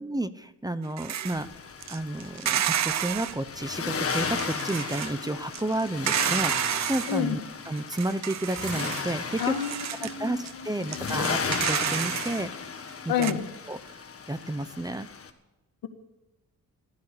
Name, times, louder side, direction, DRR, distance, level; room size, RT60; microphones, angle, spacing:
voice 1, 0.0-1.5 1.9-7.4 7.7-9.5 10.0-13.4 13.7-14.0 14.3-15.1, right 1 dB, 10° right, 12 dB, 0.8 m, -31 dB
sound 1, 1.0-1.4 1.8-3.4 4.1-5.1 5.5-7.2 7.8-10.1 10.4-10.5 10.8-12.4 12.9-13.0 13.2-13.3, right 11 dB, 55° right, 0.6 m, -30 dB
Accelerating revving vroom, 1.3-15.3, left 5 dB, 40° left, 1.7 m, -35 dB
voice 2, 9.4-9.8 10.0-11.1 13.1-13.5, left 9 dB, 90° left, 6 dB, 1.8 m, -29 dB
15.0 x 12.5 x 6.8 m, 1.0 s
cardioid pair, 105°, 34 cm